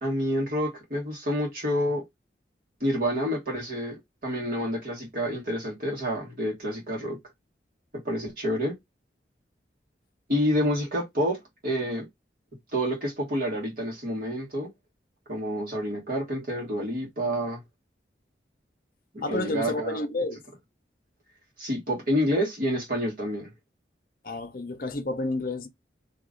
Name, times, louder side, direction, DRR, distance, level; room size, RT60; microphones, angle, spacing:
voice 1, 0.0-2.0 2.8-7.2 8.0-8.7 10.3-12.0 12.7-14.7 15.3-17.6 19.1-20.0 21.6-23.5, equal, 50° right, 1.7 m, -28 dB
voice 2, 19.2-20.4 24.2-25.7, left 2 dB, 50° left, 0.6 m, -30 dB
2.9 x 2.6 x 3.6 m
head